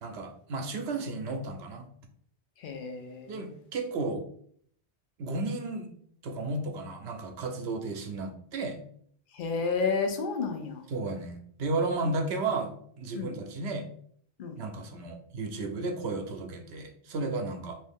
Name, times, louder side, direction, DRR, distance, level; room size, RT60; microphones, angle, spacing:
voice 1, 0.0-1.9 3.3-4.2 5.2-5.9 6.2-8.8 10.9-12.7 13.0-13.9 14.6-17.8, right 3 dB, 80° right, 5 dB, 0.8 m, -33 dB
voice 2, 2.6-3.4 9.3-10.8 13.1-13.4 14.4-14.6, left 4 dB, 60° left, 5 dB, 0.7 m, -31 dB
3.1 x 2.6 x 3.4 m, 0.62 s
omnidirectional pair, 1.1 m